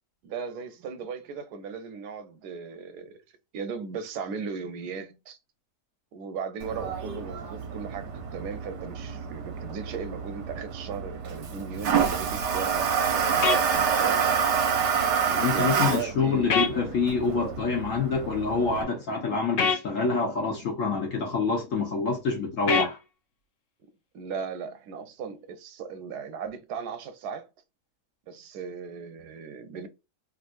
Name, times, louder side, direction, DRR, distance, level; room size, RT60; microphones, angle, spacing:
voice 1, 0.2-3.2 3.5-5.4 6.1-14.3 15.4-16.9 24.1-27.5 28.3-29.9, right 6 dB, 85° right, 1.2 m, -37 dB
Toilet flush, 6.6-18.8, right 6 dB, 55° right, 0.9 m, -28 dB
sound 1, 13.4-13.6 16.5-16.7 19.6-19.8 22.7-22.9, left 6 dB, 75° left, 0.5 m, -23 dB
voice 2, 15.3-23.0, left 4 dB, 60° left, 1.1 m, -27 dB
3.5 x 2.6 x 2.4 m
omnidirectional pair, 1.7 m